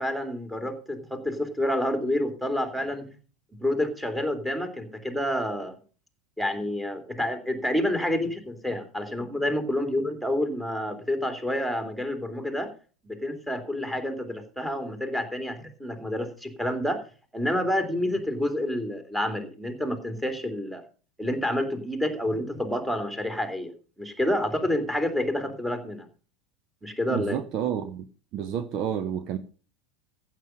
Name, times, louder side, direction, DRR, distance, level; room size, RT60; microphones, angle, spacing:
voice 1, 0.0-3.1 3.6-5.8 6.4-12.7 13.0-17.0 17.3-20.8 21.2-23.7 24.0-26.1 26.8-27.4, left 1 dB, 5° right, 3.0 m, -28 dB
voice 2, 27.1-28.1 28.3-29.4, right 9 dB, 45° right, 0.9 m, -30 dB
15.0 x 7.7 x 5.2 m
figure-of-eight pair, 80°, 0 cm